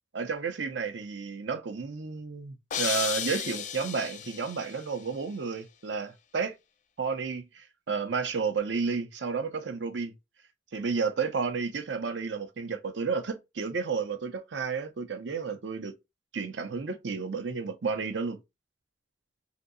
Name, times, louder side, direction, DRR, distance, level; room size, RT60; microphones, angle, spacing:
voice 1, 0.1-6.5 7.0-10.1 10.7-15.9 16.3-18.4, right 5 dB, 75° right, 0.6 m, -32 dB
sound 1, 2.7-4.8, left 8 dB, 40° left, 0.3 m, -33 dB
2.9 x 2.7 x 2.6 m
head